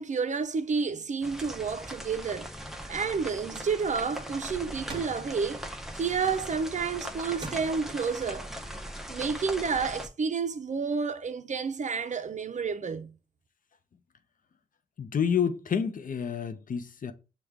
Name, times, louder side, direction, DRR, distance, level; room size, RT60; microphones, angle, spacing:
voice 1, 0.0-2.5 2.9-5.7 5.9-8.5 9.1-13.1, right 5 dB, 45° right, 0.5 m, -30 dB
sound 1, 1.2-10.1, equal, ahead, 0.6 m, -40 dB
sound 2, 4.9-5.4 7.4-8.0, right 2 dB, 30° right, 1.0 m, -41 dB
voice 2, 15.0-17.1, left 7 dB, 55° left, 0.6 m, -29 dB
6.4 x 2.3 x 3.4 m
cardioid pair, 60°, 17 cm